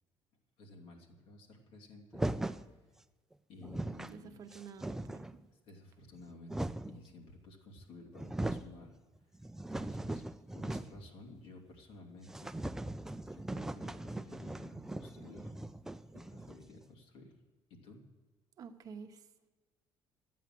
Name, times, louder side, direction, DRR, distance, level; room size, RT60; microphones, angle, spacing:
voice 1, 0.6-2.3 2.7-2.8 3.5-4.4 5.5-9.0 9.2-9.4 9.7-10.2 10.5-12.5 13.3-15.5 16.1-17.3 17.7-18.0, left 2 dB, 70° left, 0 dB, 2.8 m, -54 dB
sound 1, 2.1-2.7 3.3-3.4 3.6-4.2 4.5-5.4 6.1-7.0 7.8-7.9 8.1-8.7 9.2-11.1 11.4-11.5 11.8-11.9 12.3-16.8, right 1 dB, 5° right, 0.3 m, -39 dB
voice 2, 4.1-5.3 18.6-19.3, right 6 dB, 45° right, 7 dB, 0.9 m, -49 dB
13.0 x 9.4 x 7.6 m, 1.2 s
cardioid pair, 145°, 9 cm